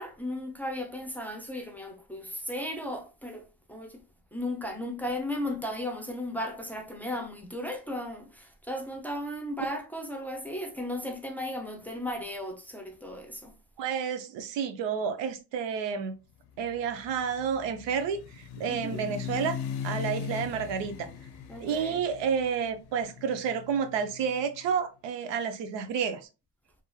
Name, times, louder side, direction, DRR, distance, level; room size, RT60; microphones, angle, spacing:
voice 1, 0.0-4.0 4.3-13.5 18.7-19.0 21.5-22.0, left 1 dB, 5° left, 0.5 m, -35 dB
voice 2, 13.8-16.1 16.6-19.6 19.8-21.1 21.6-26.2, right 7 dB, 85° right, 0.5 m, -30 dB
sound 1, 16.6-24.6, left 8 dB, 65° left, 0.5 m, -39 dB
2.9 x 2.5 x 2.2 m
cardioid pair, 85°, 43 cm